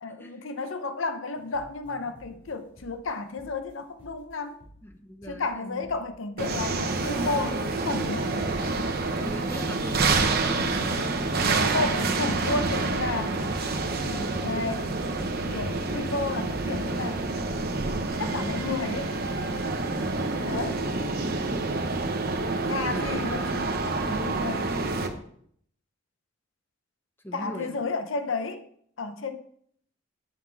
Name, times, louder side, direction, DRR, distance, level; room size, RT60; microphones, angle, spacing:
voice 1, 0.0-4.6 5.2-8.3 11.5-13.4 14.1-14.9 15.5-17.2 18.2-19.1 20.4-20.8 22.6-24.9 27.3-28.7 29.0-29.4, left 3 dB, 85° left, 0.7 m, -32 dB
sound 1, 1.3-3.1 3.4-3.7 4.0-4.3 4.6-4.9 5.2-5.6 5.8-6.2 6.4-6.7, equal, 70° left, 3.6 m, -52 dB
voice 2, 4.8-5.9 9.2-11.1 12.0-12.4 21.5-21.9 27.2-27.8, left 1 dB, 10° left, 0.8 m, -40 dB
sound 2, 6.4-25.1, right 3 dB, 50° right, 0.8 m, -28 dB
sound 3, 12.1-17.5, equal, 10° right, 2.1 m, -44 dB
7.3 x 5.8 x 4.6 m
head